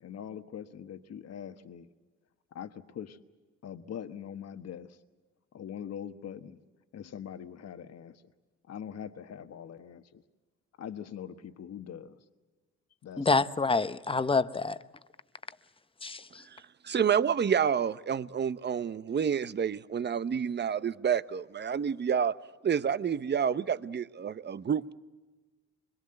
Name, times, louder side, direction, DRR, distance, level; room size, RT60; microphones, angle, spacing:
voice 1, 0.0-1.9 2.5-3.2 3.6-5.0 5.5-6.6 6.9-8.2 8.7-10.2 10.8-12.2 13.0-13.5, left 9 dB, 55° left, 1.3 m, -42 dB
voice 2, 13.2-14.8 16.0-16.2, left 4 dB, 20° left, 0.8 m, -27 dB
voice 3, 16.5-22.3 22.6-24.9, right 7 dB, 35° right, 0.8 m, -29 dB
24.0 x 22.0 x 7.8 m
cardioid pair, 90°, 30 cm